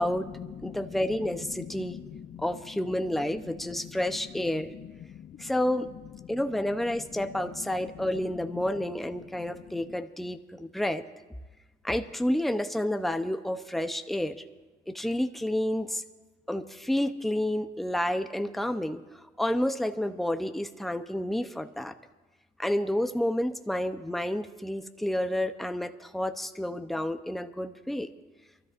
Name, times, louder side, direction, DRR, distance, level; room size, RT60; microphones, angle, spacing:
voice 1, 0.0-5.8 6.2-8.7 9.2-10.0, left 10 dB, 45° left, 12 dB, 0.5 m, -45 dB
voice 2, 0.6-2.0 2.4-4.7 5.4-5.9 6.3-11.0 11.8-14.4 14.9-16.0 16.5-21.9 22.6-28.1, left 1 dB, ahead, 8 dB, 0.7 m, -30 dB
28.5 x 13.0 x 2.5 m, 1.2 s
cardioid pair, 110°, 17 cm